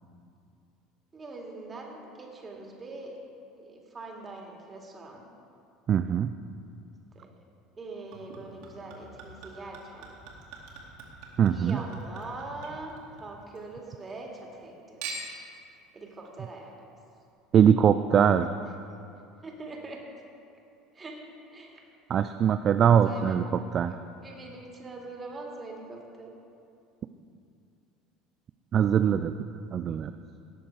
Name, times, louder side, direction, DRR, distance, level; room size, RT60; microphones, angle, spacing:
voice 1, 1.1-3.1 3.5-5.2 7.1-7.3 7.8-10.1 11.5-15.1 15.9-16.7 19.4-20.0 20.9-21.2 21.5-21.8 22.8-26.3, right 2 dB, 25° right, 0 dB, 2.4 m, -42 dB
voice 2, 5.9-6.3 11.4-11.8 17.5-18.5 22.1-23.4 23.7-23.9 28.7-29.3 29.7-30.1, right 8 dB, 40° right, 10 dB, 0.4 m, -22 dB
Chink clink / Liquid, 8.1-13.6 14.0-14.6 15.0-15.5 16.3-16.4, right 3 dB, 60° right, 2.3 m, -44 dB
18.0 x 6.9 x 4.8 m, 2.5 s
figure-of-eight pair, 70°, 0 cm